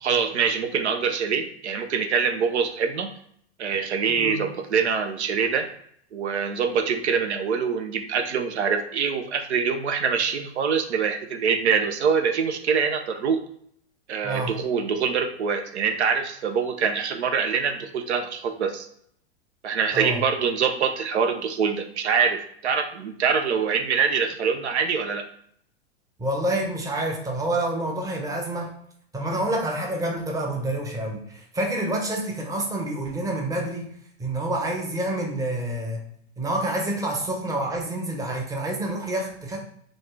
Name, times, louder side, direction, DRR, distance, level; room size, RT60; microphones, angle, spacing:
voice 1, 0.0-3.1 3.6-5.6 6.1-13.4 14.1-18.9 19.6-25.2, right 6 dB, 80° right, 6 dB, 0.6 m, -24 dB
voice 2, 14.2-14.6 19.9-20.2 26.2-28.7 29.1-33.9 34.2-36.1 36.4-39.6, right 1 dB, 10° right, 1 dB, 0.7 m, -28 dB
4.1 x 2.4 x 3.2 m, 0.65 s
hypercardioid pair, 105°, 33 cm